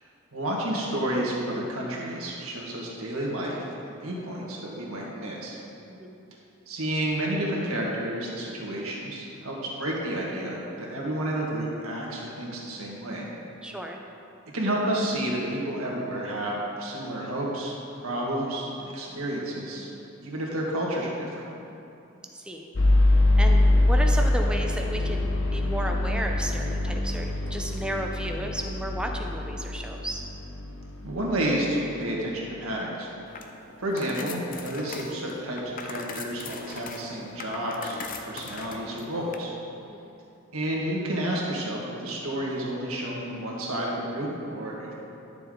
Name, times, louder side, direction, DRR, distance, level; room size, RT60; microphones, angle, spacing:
voice 1, 0.3-5.6 6.7-13.3 14.5-19.9 20.2-21.4 31.0-33.1 33.8-39.5 40.5-45.0, right 1 dB, 85° right, -3 dB, 1.7 m, -30 dB
voice 2, 13.6-14.0 22.3-22.7 23.4-30.2 39.9-40.0, right 1 dB, 5° right, 2 dB, 0.6 m, -33 dB
sound 1, 22.7-31.4, left 1 dB, 65° left, 0.9 m, -24 dB
sound 2, 33.3-39.4, left 4 dB, 40° left, 0.6 m, -40 dB
11.0 x 6.9 x 3.8 m, 2.8 s
head